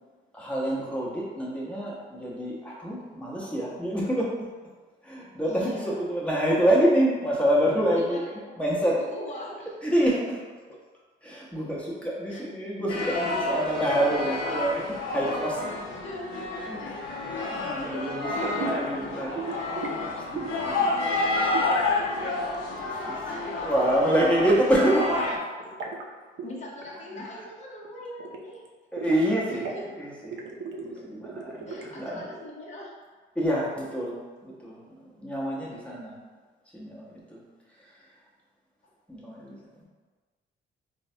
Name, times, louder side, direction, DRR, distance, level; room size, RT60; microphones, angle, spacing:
voice 1, 0.3-4.3 5.0-9.0 9.8-10.2 11.2-15.8 16.6-16.9 17.3-19.3 19.6-21.1 21.3-22.4 22.8-25.5 28.9-29.7 30.0-30.4 30.8-32.2 33.3-36.2 36.7-37.4 37.8-37.9 39.1-39.8, right 1 dB, 5° left, -6 dB, 0.9 m, -27 dB
voice 2, 5.4-6.0 8.0-8.7 9.0-9.7 10.0-10.1 12.3-12.4 15.9-16.6 20.9-21.5 26.4-28.6 29.5-29.8 31.7-32.9, left 1 dB, 35° left, -4 dB, 0.7 m, -41 dB
sound 1, 12.9-25.4, left 2 dB, 80° left, 0.6 m, -29 dB
sound 2, 18.6-18.9 19.3-20.0 20.3-20.7 21.5-23.0 23.3-23.5 23.8-25.3 25.6-26.0 26.4-26.5 26.8-27.3 27.5-28.7 29.0-29.8 30.2-32.0, right 4 dB, 65° right, 0.5 m, -37 dB
3.8 x 2.1 x 2.7 m, 1.4 s
cardioid pair, 90°, 20 cm